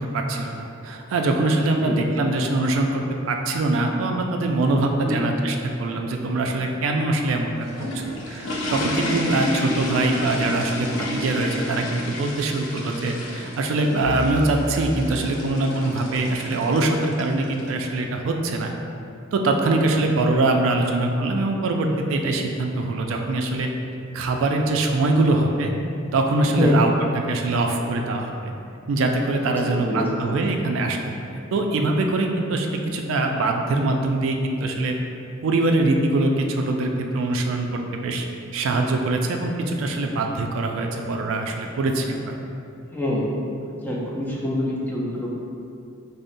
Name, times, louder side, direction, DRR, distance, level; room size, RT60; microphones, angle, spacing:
voice 1, 0.1-7.5 7.9-18.7 19.3-23.7 24.1-25.7 26.1-26.9 27.3-28.5 28.9-31.0 31.5-35.0 35.4-38.3 38.5-42.3, right 2 dB, 75° right, 3 dB, 0.3 m, -23 dB
sound 1, 7.5-17.7, left 1 dB, 80° left, 0.5 m, -30 dB
sound 2, 14.0-16.5, equal, 35° left, 1.0 m, -34 dB
voice 2, 29.5-30.0 42.9-43.3 43.7-45.4, left 1 dB, 10° left, -5 dB, 0.4 m, -26 dB
5.1 x 2.0 x 2.5 m, 2.6 s
head